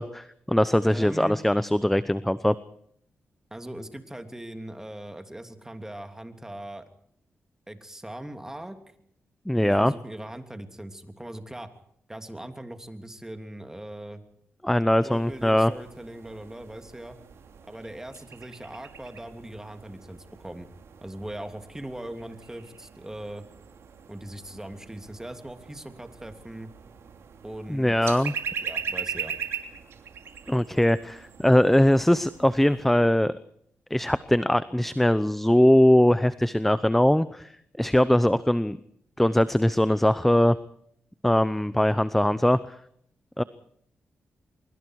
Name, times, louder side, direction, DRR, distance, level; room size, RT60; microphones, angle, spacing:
voice 1, 0.0-2.5 9.5-9.9 14.6-15.7 27.7-28.3 30.5-33.3 33.9-37.5 37.8-38.8 39.2-40.6 41.2-42.6 43.4-43.5, left 1 dB, 5° left, 15 dB, 0.8 m, -21 dB
voice 2, 0.9-1.4 3.5-6.8 7.7-8.8 9.5-11.7 12.1-14.2 15.0-17.2 17.7-20.7 21.0-23.4 24.1-26.7 27.4-28.2 28.6-29.3, right 1 dB, 10° right, 7 dB, 3.0 m, -40 dB
sound 1, 15.1-32.9, right 7 dB, 75° right, 3.1 m, -40 dB
24.5 x 23.5 x 4.8 m, 0.68 s
cardioid pair, 80°, 4 cm